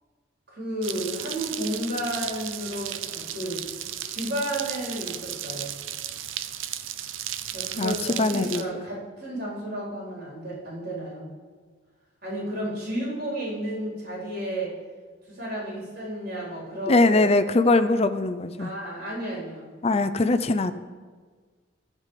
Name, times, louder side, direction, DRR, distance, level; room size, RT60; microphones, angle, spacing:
voice 1, 0.5-3.6 4.0-5.8 7.5-11.2 12.2-14.8 15.3-17.3 18.6-19.8, right 1 dB, 50° right, -5 dB, 4.3 m, -32 dB
sound 1, 0.8-8.6, right 11 dB, 90° right, 0.6 m, -35 dB
voice 2, 7.8-8.6 16.9-18.7 19.8-20.7, left 2 dB, 30° left, 12 dB, 0.5 m, -21 dB
14.5 x 5.2 x 7.4 m, 1.5 s
head